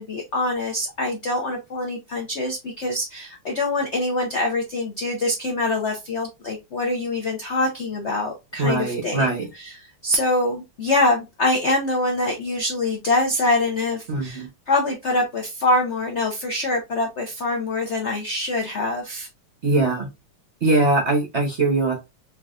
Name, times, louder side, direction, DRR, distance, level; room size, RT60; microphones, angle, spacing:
voice 1, 0.0-9.7 10.0-19.3, left 2 dB, 75° left, 2 dB, 0.6 m, -24 dB
voice 2, 8.6-9.5 14.1-14.5 19.6-20.1 20.6-21.9, right 2 dB, 50° right, 2 dB, 0.8 m, -21 dB
4.6 x 2.9 x 2.4 m, 0.23 s
omnidirectional pair, 2.3 m